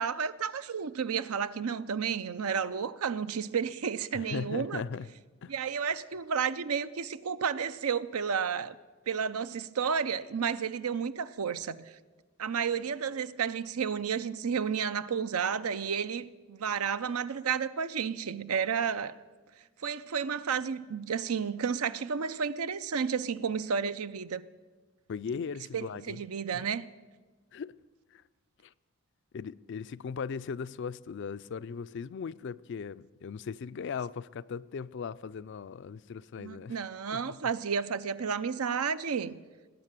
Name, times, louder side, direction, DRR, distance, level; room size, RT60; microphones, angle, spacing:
voice 1, 0.0-4.8 5.5-8.8 9.1-11.8 12.4-19.1 19.8-24.4 25.7-26.8 36.4-39.4, right 6 dB, 80° right, 0.6 m, -31 dB
voice 2, 4.1-5.1 5.4-5.5 25.1-26.2 26.5-26.7 27.5-27.8 28.1-28.2 28.6-28.7 29.3-36.8 37.1-37.5, left 6 dB, 55° left, 0.3 m, -38 dB
19.0 x 8.6 x 7.5 m
head